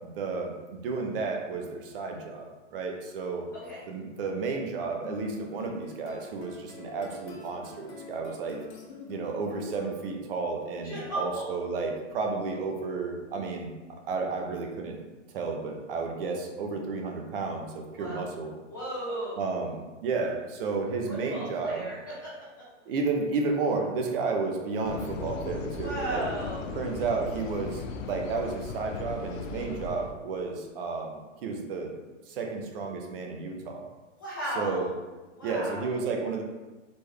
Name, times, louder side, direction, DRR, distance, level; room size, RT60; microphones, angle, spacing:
voice 1, 0.0-3.5 3.9-8.6 9.1-13.7 14.1-15.0 15.3-18.5 19.4-21.8 22.9-26.2 26.8-31.9 32.3-33.8 34.6-34.9 35.4-36.4, right 4 dB, 45° right, 2 dB, 0.8 m, -32 dB
sound 1, 5.0-10.4, left 5 dB, 60° left, 1.2 m, -45 dB
voice 2, 10.8-11.4 18.0-18.3 18.7-19.4 21.1-22.3 25.8-26.6 34.2-34.9 35.3-36.0, right 1 dB, 20° left, -8 dB, 0.3 m, -35 dB
sound 2, 24.8-30.1, left 4 dB, 90° left, 0.6 m, -37 dB
4.3 x 3.4 x 3.2 m, 1.2 s
hypercardioid pair, 160°, 38 cm